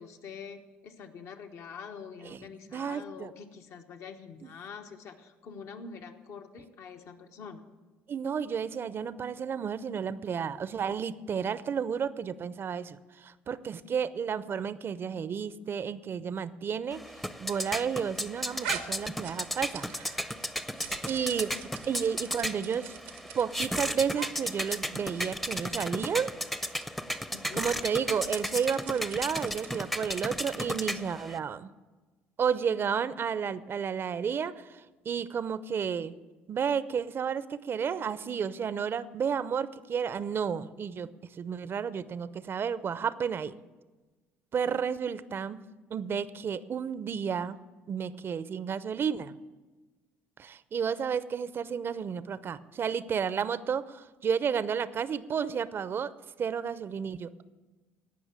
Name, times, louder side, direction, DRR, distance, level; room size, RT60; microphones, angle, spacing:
voice 1, 0.0-7.7 27.3-27.7, left 6 dB, 55° left, 6 dB, 1.2 m, -45 dB
voice 2, 2.7-3.3 8.1-17.0 17.4-20.2 21.0-23.0 23.3-26.3 27.6-31.7 32.4-34.8 35.1-36.2 36.5-41.1 41.4-43.6 44.5-45.6 45.9-47.6 47.9-49.4 50.4-56.1 56.4-57.3, right 7 dB, 40° right, 16 dB, 0.6 m, -32 dB
sound 1, 16.9-31.4, equal, 5° left, 0.7 m, -35 dB
sound 2, 18.6-20.1 20.4-23.7 24.1-24.3 24.6-24.8 25.1-25.3 25.7-26.1 26.7-26.8 27.1-27.2 28.0-29.9, right 10 dB, 90° right, 1.0 m, -43 dB
17.0 x 6.0 x 7.2 m, 1.2 s
hypercardioid pair, 60°, 6 cm